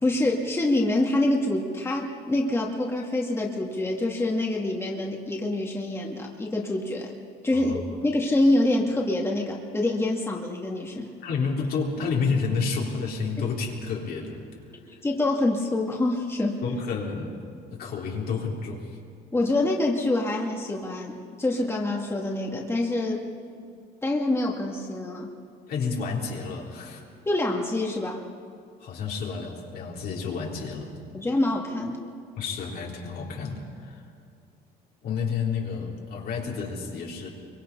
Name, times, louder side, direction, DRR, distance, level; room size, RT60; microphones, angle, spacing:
voice 1, 0.0-7.2 7.4-11.1 15.0-16.6 19.3-23.2 24.0-25.3 27.3-28.2 31.1-32.0, left 2 dB, 15° left, -1 dB, 2.1 m, -26 dB
voice 2, 11.2-14.4 16.6-19.0 25.7-27.0 28.8-30.9 32.4-34.0 35.0-37.3, left 5 dB, 65° left, -2 dB, 3.9 m, -30 dB
24.5 x 23.5 x 5.6 m, 2.3 s
cardioid pair, 110°, 17 cm